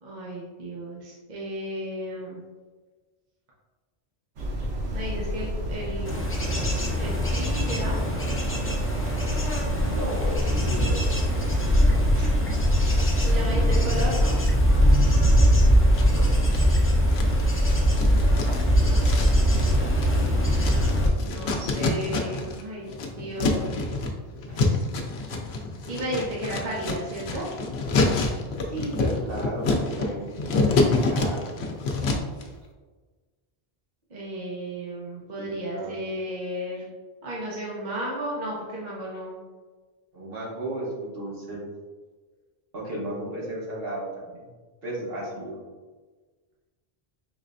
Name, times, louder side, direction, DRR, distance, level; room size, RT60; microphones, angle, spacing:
voice 1, 0.0-2.4 4.9-8.0 13.2-14.4 18.0-19.5 20.8-22.9 23.2-23.7 25.9-27.4 34.1-36.8 37.2-39.4, equal, 45° right, -5 dB, 0.9 m, -34 dB
sound 1, 4.4-12.0, equal, 85° right, 1.0 m, -31 dB
Bird / Insect / Wind, 6.1-21.1, equal, 20° left, 0.4 m, -21 dB
voice 2, 9.6-11.3 12.1-12.3 16.0-16.3 24.5-24.8 26.5-26.7 28.7-31.5 35.3-35.9 40.1-41.6 42.7-44.5 44.8-45.6, right 1 dB, 65° right, -6 dB, 1.5 m, -35 dB
sound 2, 15.9-16.7 17.1-22.6 22.9-32.4, left 3 dB, 85° left, 0.9 m, -27 dB
5.2 x 3.2 x 2.5 m, 1.4 s
omnidirectional pair, 1.0 m